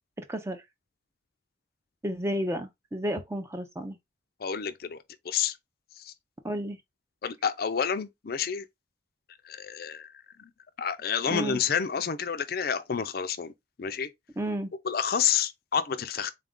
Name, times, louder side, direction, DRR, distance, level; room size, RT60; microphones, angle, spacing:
voice 1, 0.2-0.6 2.0-4.0 6.4-6.8 11.3-11.6 14.4-14.7, equal, 15° right, 0.4 m, -32 dB
voice 2, 4.4-5.6 6.0-6.1 7.2-8.7 9.4-10.5 10.8-13.5 13.8-14.1 14.8-16.3, left 7 dB, 50° left, 0.4 m, -29 dB
3.8 x 2.5 x 3.6 m
head